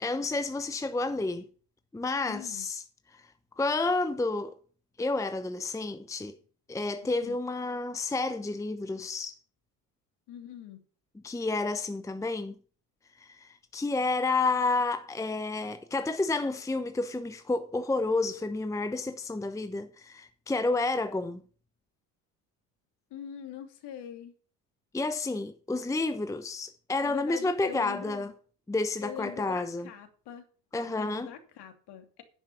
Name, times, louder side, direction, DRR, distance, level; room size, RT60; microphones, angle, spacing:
voice 1, 0.0-1.5 1.9-2.8 3.1-3.3 3.6-4.5 5.0-6.3 6.7-9.4 11.2-12.6 13.2-21.4 24.9-28.3 28.7-29.9 30.7-31.3, left 3 dB, 5° left, 0.9 m, -30 dB
voice 2, 2.3-2.7 7.2-7.4 10.3-10.8 23.1-24.3 27.0-28.3 29.0-30.4 30.9-32.2, left 9 dB, 55° left, 2.7 m, -42 dB
10.5 x 6.1 x 7.0 m
hypercardioid pair, 75°, 49 cm